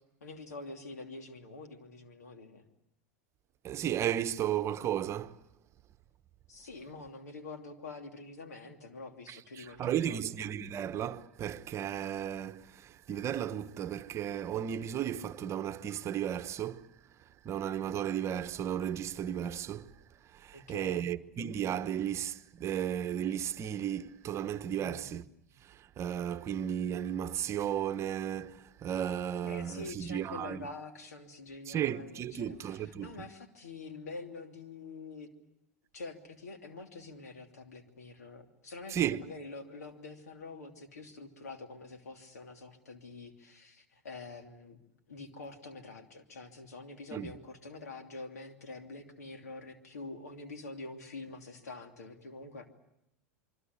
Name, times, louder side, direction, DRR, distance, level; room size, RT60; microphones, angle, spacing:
voice 1, 0.2-2.6 6.5-10.3 20.5-21.1 24.7-25.1 29.4-35.3 35.9-44.8 45.1-52.7, left 3 dB, 85° left, 3.0 m, -46 dB
voice 2, 3.6-5.4 9.3-16.9 17.4-19.9 20.3-25.2 25.7-30.6 31.7-33.1 38.9-39.2 47.1-47.3, right 10 dB, 35° right, 1.1 m, -34 dB
26.5 x 24.0 x 8.3 m
hypercardioid pair, 100°, 8 cm